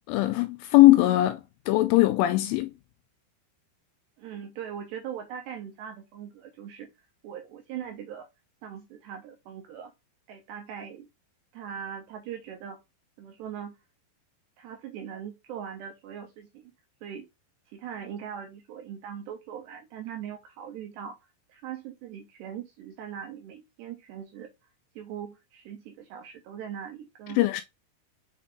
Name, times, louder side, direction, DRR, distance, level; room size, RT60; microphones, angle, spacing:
voice 1, 0.1-2.7 27.4-27.6, left 17 dB, 85° left, 2.8 m, -20 dB
voice 2, 4.2-6.9 7.2-8.3 8.6-9.9 10.3-11.1 11.5-12.8 13.2-13.8 14.6-16.7 17.0-17.3 17.7-21.2 21.5-24.5 25.0-27.4, right 8 dB, 80° right, 2.5 m, -40 dB
7.4 x 5.6 x 3.5 m
omnidirectional pair, 6.0 m